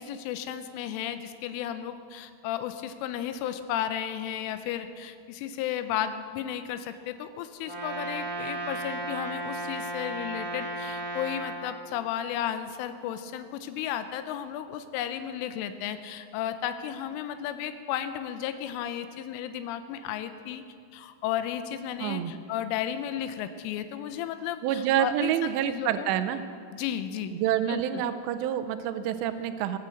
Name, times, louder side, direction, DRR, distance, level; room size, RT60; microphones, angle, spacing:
voice 1, 0.0-20.6 20.9-26.1 26.7-27.3 27.7-28.0, left 10 dB, 90° left, 10 dB, 3.2 m, -34 dB
Brass instrument, 7.6-11.6, right 2 dB, 10° left, 2.3 m, -34 dB
voice 2, 22.0-22.3 24.6-26.4 27.3-29.8, right 10 dB, 85° right, 10 dB, 2.5 m, -27 dB
19.5 x 8.4 x 7.7 m, 2.3 s
omnidirectional pair, 5.6 m